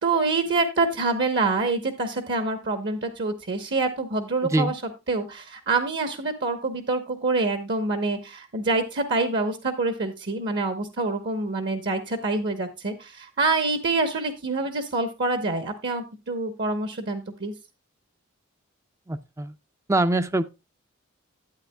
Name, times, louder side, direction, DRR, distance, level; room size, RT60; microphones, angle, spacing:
voice 1, 0.0-4.8 5.1-17.5, right 3 dB, 55° right, 0.9 m, -26 dB
voice 2, 19.1-19.5 19.9-20.4, right 2 dB, 15° right, 0.4 m, -23 dB
11.5 x 8.8 x 2.2 m
head